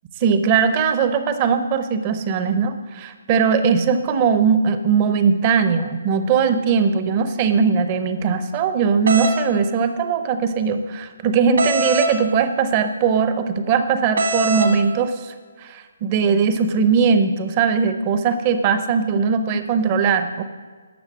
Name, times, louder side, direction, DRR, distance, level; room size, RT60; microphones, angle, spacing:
voice 1, 0.2-20.4, right 6 dB, 20° right, 9 dB, 0.7 m, -20 dB
sound 1, 9.1-9.4 11.6-12.1 14.2-14.7, right 1 dB, 60° right, 1.5 m, -21 dB
12.0 x 7.1 x 7.3 m, 1.5 s
hypercardioid pair, 175°, 0 cm